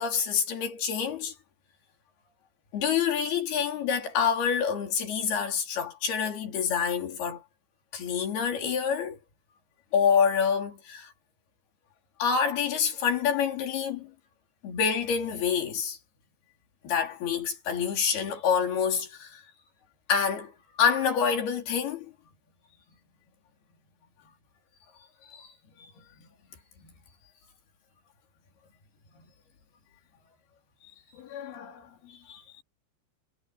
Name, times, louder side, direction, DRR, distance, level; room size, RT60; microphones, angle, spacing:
voice 1, 0.0-1.3 2.7-7.4 7.9-9.2 9.9-11.1 12.2-14.1 14.6-16.0 16.8-19.4 20.1-20.5 20.8-22.1 25.3-25.5 25.8-25.9 32.3-32.6, left 7 dB, 55° left, 5.4 m, -27 dB
voice 2, 31.1-32.3, left 9 dB, 80° left, 5.6 m, -44 dB
omnidirectional pair, 5.5 m